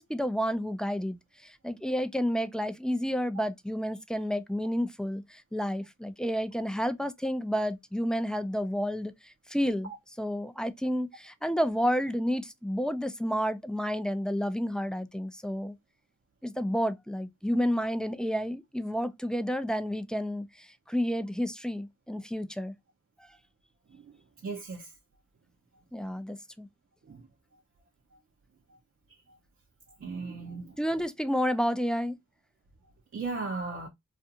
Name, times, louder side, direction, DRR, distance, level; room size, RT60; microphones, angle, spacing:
voice 1, 0.0-9.9 10.2-15.8 16.4-22.7 23.2-23.3 25.9-26.7 30.8-32.2, equal, 5° left, 0.3 m, -30 dB
voice 2, 24.4-24.9 27.1-27.3 30.0-30.8 33.1-33.9, right 4 dB, 50° right, 0.6 m, -36 dB
2.5 x 2.4 x 2.6 m
wide cardioid pair, 75°, 29 cm